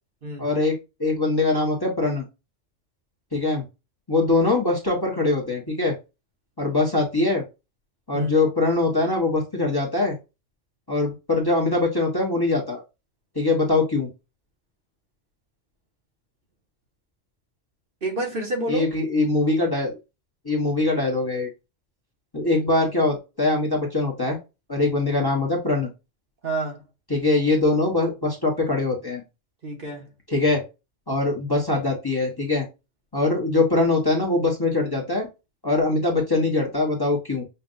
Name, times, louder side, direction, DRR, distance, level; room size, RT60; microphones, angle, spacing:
voice 1, 0.4-2.2 3.3-3.6 4.1-5.9 6.6-7.4 8.1-10.2 10.9-12.8 13.3-14.1 18.7-20.0 20.4-21.5 22.3-24.4 24.7-25.9 27.1-29.2 30.3-30.6 31.1-32.6 33.1-35.3 35.6-37.4, left 2 dB, 20° left, 1.1 m, -22 dB
voice 2, 18.0-18.9 26.4-26.8 29.6-30.1, right 1 dB, 50° right, 1.3 m, -28 dB
5.5 x 2.5 x 2.5 m
omnidirectional pair, 1.3 m